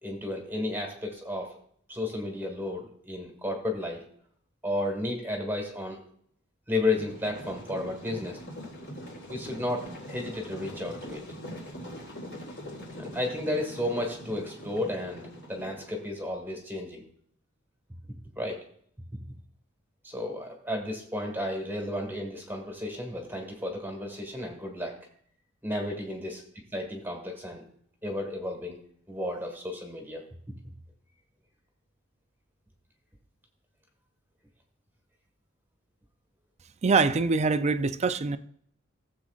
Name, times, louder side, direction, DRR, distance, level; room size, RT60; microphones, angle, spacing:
voice 1, 0.0-1.6 1.9-4.0 4.6-6.0 6.7-8.4 9.3-11.2 13.0-17.0 18.4-18.6 20.0-25.0 25.6-26.4 26.7-27.6 28.0-28.8 29.1-30.2, left 1 dB, 10° right, 1.6 m, -33 dB
sound 1, 6.9-16.0, equal, 65° left, 3.8 m, -42 dB
voice 2, 36.8-38.4, right 4 dB, 35° right, 0.4 m, -24 dB
16.5 x 7.5 x 2.4 m
head